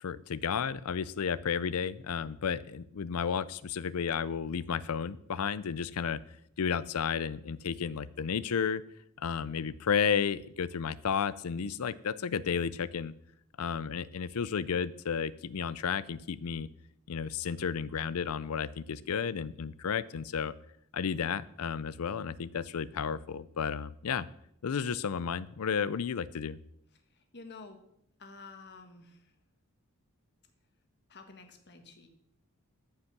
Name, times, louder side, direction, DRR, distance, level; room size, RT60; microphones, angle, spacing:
voice 1, 0.0-6.2 6.6-8.8 9.2-13.1 13.6-16.7 17.1-20.5 20.9-24.3 24.6-26.6, left 6 dB, 85° left, 18 dB, 0.5 m, -32 dB
voice 2, 27.1-27.8 28.2-29.3 31.1-32.1, left 3 dB, 50° left, 7 dB, 1.4 m, -50 dB
13.5 x 5.5 x 5.9 m, 0.74 s
head